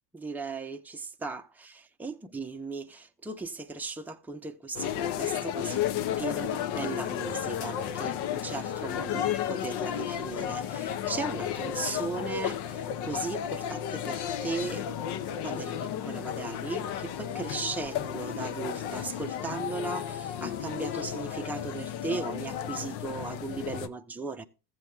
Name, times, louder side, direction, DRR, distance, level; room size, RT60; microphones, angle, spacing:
voice 1, 0.1-5.8 6.2-14.8 15.4-24.4, right 4 dB, 5° right, 0.6 m, -37 dB
sound 1, 4.7-23.9, left 9 dB, 60° left, 0.8 m, -33 dB
15.0 x 7.6 x 2.2 m
supercardioid pair, 90°, 46 cm